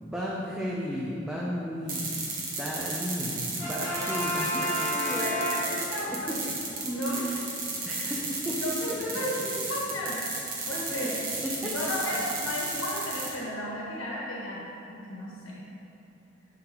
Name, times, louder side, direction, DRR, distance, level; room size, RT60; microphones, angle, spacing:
voice 1, 0.0-2.3 2.6-5.4 6.1-6.2 7.2-7.4 7.8-8.6 10.9-11.1 11.4-11.5, equal, 5° right, -6 dB, 0.5 m, -34 dB
sound 1, 1.9-13.3, right 3 dB, 45° right, 1.2 m, -33 dB
Brass instrument, 3.6-6.2, equal, 10° left, 0.8 m, -31 dB
voice 2, 5.2-6.4 6.8-7.3 8.0-8.1 8.6-10.2 10.7-11.1 11.7-15.6, left 1 dB, 85° left, -5 dB, 1.2 m, -34 dB
10.5 x 3.8 x 3.0 m, 2.8 s
head